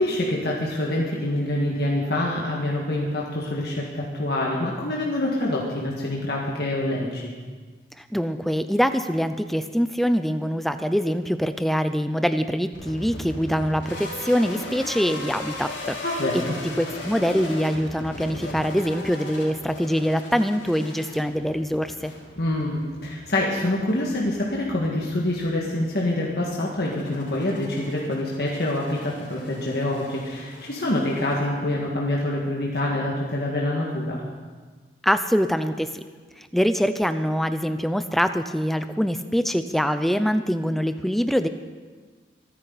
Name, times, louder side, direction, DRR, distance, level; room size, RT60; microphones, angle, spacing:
voice 1, 0.0-7.3 16.0-16.6 22.4-34.2, left 1 dB, 55° left, -3 dB, 1.8 m, -26 dB
voice 2, 8.0-16.0 16.3-22.1 35.0-36.0 36.4-41.5, equal, ahead, 10 dB, 0.5 m, -24 dB
sound 1, 12.7-31.9, left 2 dB, 75° left, 3.4 m, -39 dB
25.5 x 10.0 x 4.1 m, 1.5 s
head